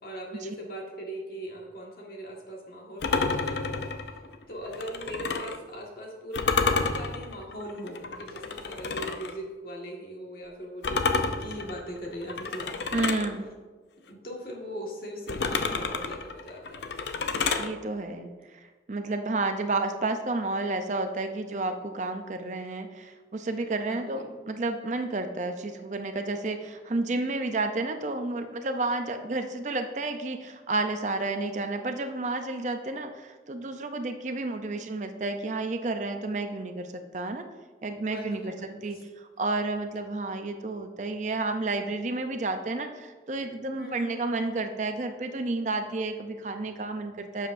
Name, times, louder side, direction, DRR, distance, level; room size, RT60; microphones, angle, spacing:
voice 1, 0.0-4.2 4.5-12.8 14.1-16.9 23.9-24.3 38.0-38.8 43.7-44.2, right 1 dB, 55° left, -1 dB, 1.6 m, -40 dB
sound 1, 3.0-5.6 6.3-9.3 10.8-13.3 15.3-17.7, left 4 dB, 75° left, 0.5 m, -30 dB
voice 2, 12.9-13.5 17.6-37.5 37.8-38.5 38.8-47.5, right 2 dB, 40° right, 7 dB, 0.5 m, -31 dB
11.0 x 7.3 x 2.6 m, 1.4 s
head